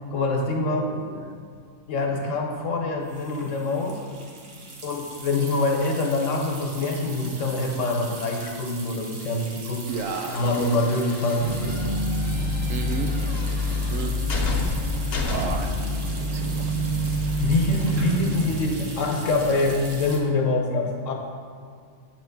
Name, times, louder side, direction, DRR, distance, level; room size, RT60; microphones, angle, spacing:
voice 1, 0.1-0.9 1.9-4.0 4.8-9.8 10.3-11.8 17.4-21.1, left 2 dB, 70° left, 1 dB, 1.3 m, -25 dB
voice 2, 0.6-1.4 9.9-10.4 12.7-13.1 13.9-14.2 15.3-15.7 16.2-16.7, right 5 dB, 85° right, 5 dB, 1.1 m, -33 dB
sound 1, 1.1-1.2 1.4-1.7 3.0-20.2, right 3 dB, 55° right, 1.1 m, -41 dB
sound 2, 9.9-15.8, left 2 dB, 55° left, 1.0 m, -33 dB
sound 3, 11.4-19.9, equal, 25° right, 0.8 m, -27 dB
8.8 x 3.0 x 5.8 m, 2.2 s
omnidirectional pair, 1.4 m